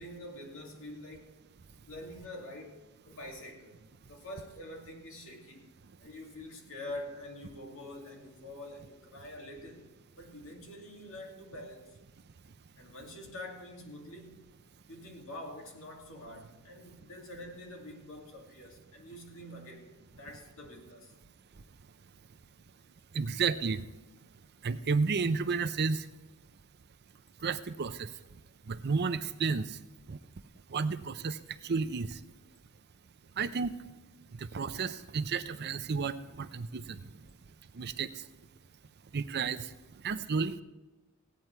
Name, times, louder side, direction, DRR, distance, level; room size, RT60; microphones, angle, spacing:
voice 1, 0.0-1.4 1.9-3.8 4.1-5.7 6.0-9.9 10.2-12.0 12.8-14.4 14.9-19.9 20.2-21.1, left 1 dB, 65° left, 1 dB, 2.5 m, -46 dB
voice 2, 23.1-23.8 24.6-26.0 27.4-28.1 28.7-29.6 30.1-30.2 30.7-31.4 31.6-32.1 33.4-33.7 34.5-37.0 37.8-38.1 39.1-39.6 40.0-40.6, right 5 dB, 50° right, 12 dB, 0.6 m, -31 dB
16.5 x 9.6 x 4.5 m, 1.1 s
head